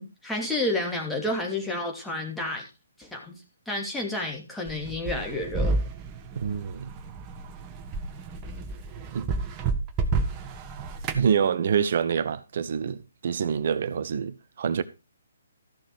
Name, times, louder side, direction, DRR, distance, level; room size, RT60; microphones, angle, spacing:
voice 1, 0.0-2.7 3.0-3.4 3.7-5.8, left 2 dB, 5° left, 2.7 m, -30 dB
sound 1, 4.7-11.3, right 3 dB, 20° right, 1.4 m, -30 dB
voice 2, 6.3-6.9 9.1-9.3 11.1-14.8, right 7 dB, 50° right, 1.0 m, -26 dB
14.0 x 6.5 x 4.7 m
figure-of-eight pair, 135°, 0 cm